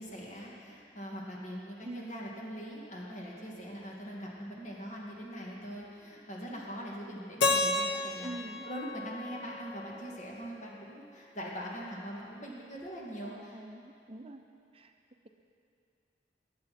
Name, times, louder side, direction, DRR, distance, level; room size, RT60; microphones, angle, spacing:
voice 1, 0.0-8.4 8.6-13.6, equal, 45° left, -3 dB, 2.2 m, -42 dB
Keyboard (musical), 7.4-10.4, left 3 dB, 90° left, 0.8 m, -32 dB
voice 2, 8.2-8.6 13.2-14.4 14.7-14.9, right 2 dB, 35° right, 5 dB, 0.7 m, -44 dB
19.5 x 8.0 x 4.3 m, 2.4 s
head